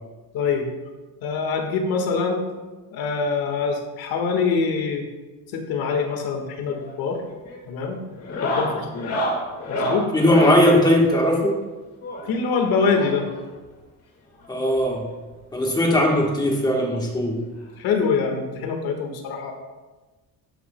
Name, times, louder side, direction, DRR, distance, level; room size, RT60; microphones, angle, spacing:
voice 1, 0.3-0.7 1.2-2.4 2.9-5.0 5.5-7.2 7.7-8.0 8.4-9.2 9.7-10.1 12.3-13.3 17.8-19.5, left 5 dB, 80° left, 4 dB, 1.6 m, -24 dB
sound 1, 6.6-7.0 7.3-7.6 8.2-10.7 12.0-13.4 14.4-14.5 14.7-14.9 15.3-15.4 16.7-16.8 18.1-18.2, equal, 40° left, 1.9 m, -28 dB
voice 2, 10.1-11.6 14.5-15.0 15.5-17.4, left 1 dB, 10° left, -1 dB, 1.2 m, -19 dB
12.5 x 9.0 x 2.2 m, 1.2 s
cardioid pair, 170°, 36 cm